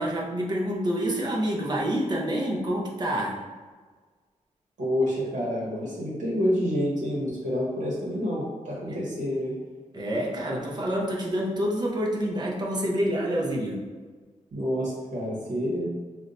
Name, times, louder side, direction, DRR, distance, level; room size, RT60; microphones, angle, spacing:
voice 1, 0.0-3.5 8.9-9.0 9.9-13.8, equal, 35° right, -3 dB, 0.5 m, -27 dB
voice 2, 4.8-9.5 14.5-15.9, equal, 75° right, -6 dB, 0.9 m, -28 dB
2.6 x 2.1 x 3.9 m, 1.4 s
wide cardioid pair, 175°, 13 cm